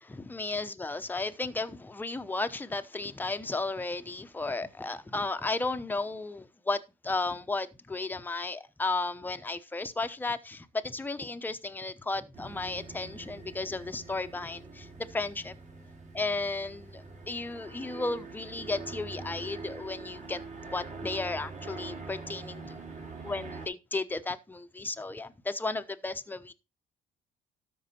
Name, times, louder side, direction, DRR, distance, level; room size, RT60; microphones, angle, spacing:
voice 1, 0.0-15.5 16.1-22.8 23.2-26.5, left 3 dB, 10° left, 0.8 m, -34 dB
sound 1, 12.3-23.7, right 3 dB, 45° right, 3.7 m, -44 dB
13.0 x 5.4 x 4.4 m
cardioid pair, 110°, 17 cm